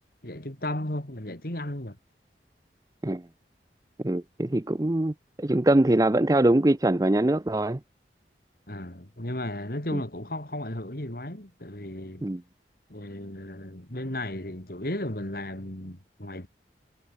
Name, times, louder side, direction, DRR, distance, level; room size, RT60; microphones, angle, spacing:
voice 1, 0.2-2.0 8.7-12.3 12.9-16.5, left 1 dB, 55° left, 3.6 m, -35 dB
voice 2, 4.0-7.8 9.9-10.0 12.2-12.4, right 1 dB, 20° right, 0.6 m, -23 dB
head